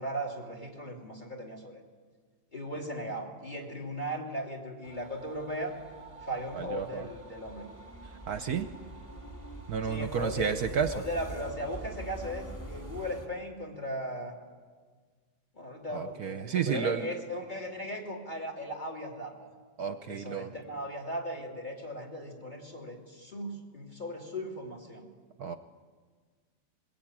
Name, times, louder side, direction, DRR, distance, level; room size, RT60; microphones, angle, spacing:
voice 1, 0.0-1.8 2.5-5.8 6.2-7.7 9.8-14.3 15.5-19.5 20.1-25.1, equal, 25° left, 0 dB, 3.3 m, -37 dB
sound 1, 4.8-13.3, right 1 dB, 10° left, 2.7 m, -45 dB
voice 2, 6.5-7.1 8.3-8.7 9.7-10.9 15.9-17.1 19.8-20.5 25.4-25.6, right 7 dB, 65° right, 9 dB, 1.3 m, -31 dB
22.0 x 20.5 x 8.9 m, 1.5 s
omnidirectional pair, 1.9 m